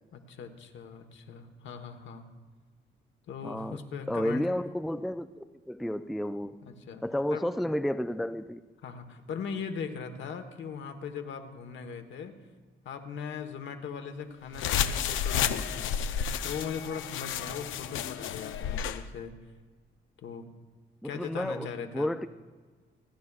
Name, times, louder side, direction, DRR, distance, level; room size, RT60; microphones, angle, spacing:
voice 1, 0.1-2.2 3.3-4.5 6.6-7.0 7.3-7.5 8.8-12.3 12.8-15.9 16.4-19.3 20.2-20.5 21.0-22.1, left 6 dB, 70° left, 1.2 m, -39 dB
voice 2, 3.4-3.8 4.1-6.6 7.0-8.6 21.0-22.3, left 1 dB, ahead, 0.3 m, -32 dB
sound 1, 14.5-19.0, left 8 dB, 85° left, 0.6 m, -31 dB
28.5 x 9.7 x 2.4 m
cardioid pair, 90°, 20 cm